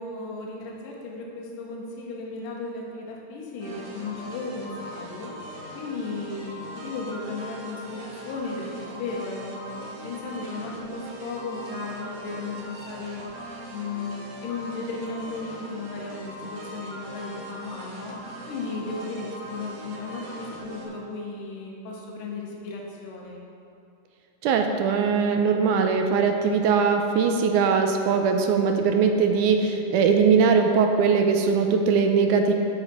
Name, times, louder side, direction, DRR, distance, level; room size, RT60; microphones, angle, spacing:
voice 1, 0.0-5.3 5.7-9.8 10.0-13.3 13.7-18.2 18.5-23.4, left 3 dB, 80° left, -2 dB, 2.7 m, -35 dB
sound 1, 3.6-20.8, equal, 50° right, 2.0 m, -40 dB
voice 2, 24.4-32.5, right 5 dB, 80° right, 4 dB, 1.9 m, -21 dB
13.0 x 5.0 x 4.2 m, 2.4 s
omnidirectional pair, 3.9 m